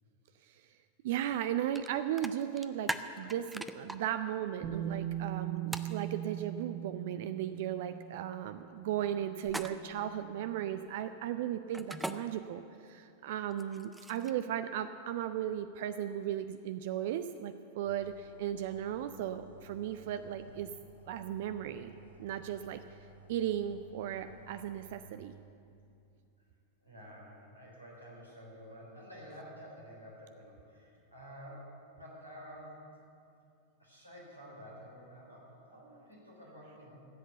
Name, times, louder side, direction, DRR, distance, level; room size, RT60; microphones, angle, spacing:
voice 1, 1.0-20.7 21.1-22.8 23.3-25.3, right 10 dB, 50° right, 11 dB, 0.4 m, -36 dB
sound 1, 1.7-1.9 2.2-4.0 5.7-5.9 9.4-10.0 11.7-12.1 13.5-14.4, right 2 dB, 5° right, 0.5 m, -39 dB
Bass guitar, 4.6-10.7, right 11 dB, 25° right, 1.1 m, -41 dB
sound 2, 17.8-25.1, right 2 dB, 80° left, 2.3 m, -57 dB
voice 2, 26.8-32.9 33.8-37.1, equal, 90° right, -5 dB, 4.0 m, -50 dB
14.5 x 8.0 x 8.0 m, 2.6 s
figure-of-eight pair, 90°, 0 cm